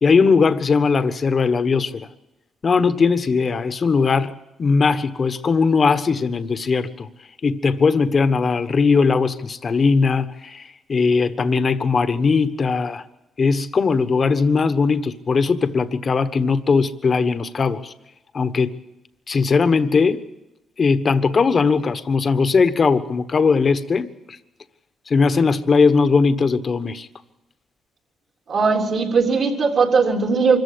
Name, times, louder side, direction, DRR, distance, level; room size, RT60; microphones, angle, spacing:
voice 1, 0.0-2.1 2.6-4.3 4.6-7.1 7.4-13.0 13.4-17.9 18.3-18.7 19.3-20.2 20.8-24.4 25.1-27.1, left 4 dB, 40° left, 11 dB, 1.3 m, -19 dB
voice 2, 28.5-30.6, right 4 dB, 55° right, 2 dB, 3.6 m, -18 dB
25.0 x 14.5 x 8.6 m, 0.95 s
cardioid pair, 90°, 0 cm